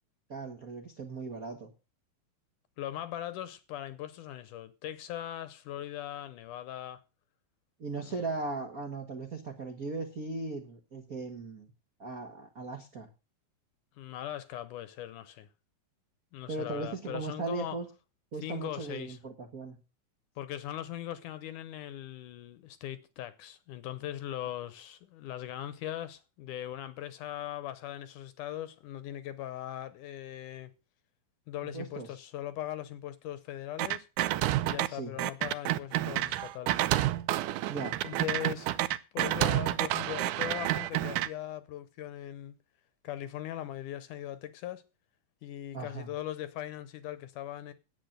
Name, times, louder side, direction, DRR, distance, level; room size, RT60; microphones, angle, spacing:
voice 1, 0.3-1.7 7.8-11.7 12.0-13.1 16.5-17.9 18.3-19.8 31.6-32.2 34.9-35.1 37.7-38.0 45.7-46.1, right 3 dB, 55° right, 0.9 m, -38 dB
voice 2, 2.8-7.0 8.0-8.3 14.0-15.5 16.3-17.8 18.4-19.2 20.4-30.7 31.5-34.1 34.6-36.8 38.0-38.7 39.1-42.6 43.0-44.8 45.4-47.7, left 12 dB, 75° left, 2.0 m, -40 dB
sound 1, 33.8-34.9 35.2-41.3, right 15 dB, 75° right, 1.9 m, -29 dB
10.5 x 8.6 x 6.6 m
omnidirectional pair, 4.2 m